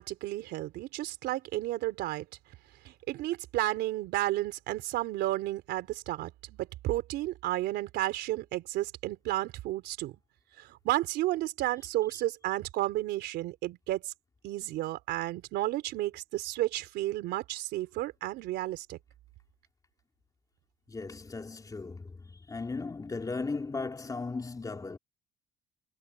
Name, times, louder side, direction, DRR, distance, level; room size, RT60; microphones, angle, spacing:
voice 1, 0.0-2.3 2.8-10.1 10.6-14.1 14.4-19.0, right 16 dB, 85° right, 3.7 m, -32 dB
voice 2, 20.9-25.0, left 3 dB, 20° left, 3.8 m, -37 dB
cardioid pair, 110°, 17 cm